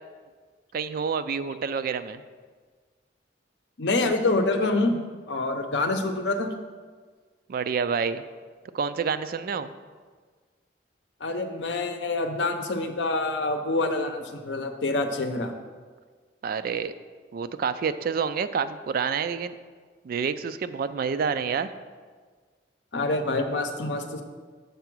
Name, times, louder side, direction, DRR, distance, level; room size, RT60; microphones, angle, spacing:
voice 1, 0.7-2.2 7.5-8.2 8.7-9.7 16.4-16.9 17.3-19.5 20.0-21.7, right 6 dB, 55° right, 12 dB, 0.3 m, -28 dB
voice 2, 3.8-5.0 5.3-6.5 11.2-15.5 22.9-24.2, left 2 dB, 75° left, 6 dB, 0.7 m, -26 dB
6.8 x 4.7 x 6.1 m, 1.5 s
head